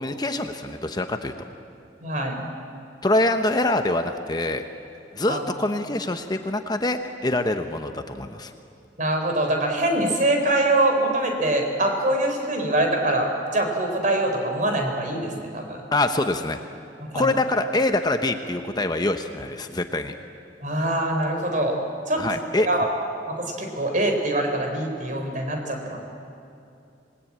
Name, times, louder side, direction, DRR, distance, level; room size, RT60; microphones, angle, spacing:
voice 1, 0.0-1.3 3.0-4.6 5.1-8.5 15.9-16.6 17.1-20.1 22.2-22.7, left 2 dB, 25° left, 7 dB, 0.9 m, -25 dB
voice 2, 2.0-2.5 5.3-5.4 9.0-15.8 17.1-17.3 20.6-21.8 22.1-22.2 22.7-22.9 23.3-26.0, right 1 dB, 45° right, 3 dB, 4.2 m, -24 dB
27.0 x 20.0 x 8.7 m, 2.7 s
head